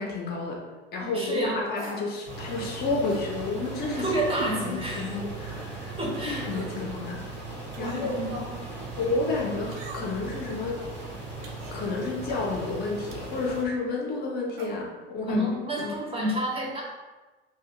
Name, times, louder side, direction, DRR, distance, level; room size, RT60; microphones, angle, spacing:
voice 1, 0.0-4.2 4.4-6.0 6.2-7.3 7.8-8.2 9.0-10.9 11.7-15.5 15.8-16.0, left 3 dB, 30° left, -1 dB, 0.4 m, -31 dB
voice 2, 1.0-1.6 4.0-5.4 6.0-6.5 7.8-8.5 15.3-16.8, equal, 20° right, -2 dB, 0.5 m, -29 dB
sound 1, 1.7-2.1 3.1-3.3 4.4-4.6 5.1-5.2 6.4-6.8 7.7-8.1 9.7-10.3 11.4-11.8 13.1-13.4 14.5-14.8 15.7-15.9 16.2-16.3, right 3 dB, 65° right, 0.5 m, -40 dB
sound 2, 2.2-13.6, right 3 dB, 85° right, 1.0 m, -38 dB
2.4 x 2.1 x 2.7 m, 1.2 s
figure-of-eight pair, 65°, 31 cm